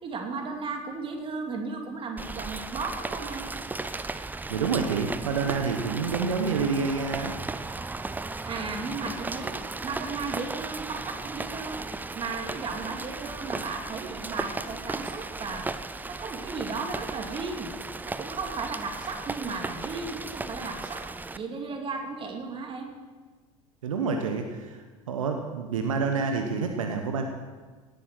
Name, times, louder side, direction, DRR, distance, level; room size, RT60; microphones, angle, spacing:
voice 1, 0.0-3.5 8.4-11.8 12.1-15.7 16.1-17.7 18.0-21.0 21.4-22.9, right 4 dB, 30° right, 3 dB, 2.5 m, -35 dB
Rain, 2.2-21.4, right 3 dB, 10° right, 0.6 m, -36 dB
voice 2, 4.5-7.3 23.8-27.2, right 5 dB, 70° right, 4 dB, 1.2 m, -28 dB
17.5 x 9.1 x 6.2 m, 1.4 s
figure-of-eight pair, 70°, 18 cm